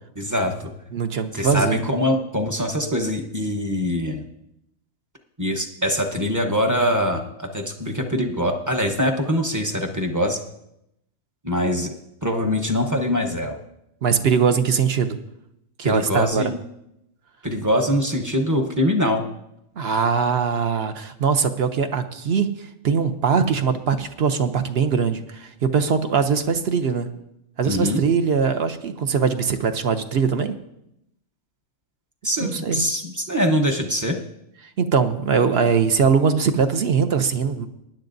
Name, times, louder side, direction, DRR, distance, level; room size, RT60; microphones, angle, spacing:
voice 1, 0.1-0.7 1.3-4.3 5.4-10.4 11.4-11.9 12.2-13.6 15.8-16.6 17.4-19.3 27.6-28.0 32.2-34.2, equal, 15° right, 3 dB, 0.8 m, -23 dB
voice 2, 0.9-1.8 14.0-15.2 15.8-16.4 19.8-27.1 27.6-30.5 32.4-32.8 34.8-37.7, right 6 dB, 55° right, 9 dB, 0.8 m, -21 dB
19.5 x 10.5 x 2.6 m, 0.81 s
omnidirectional pair, 1.5 m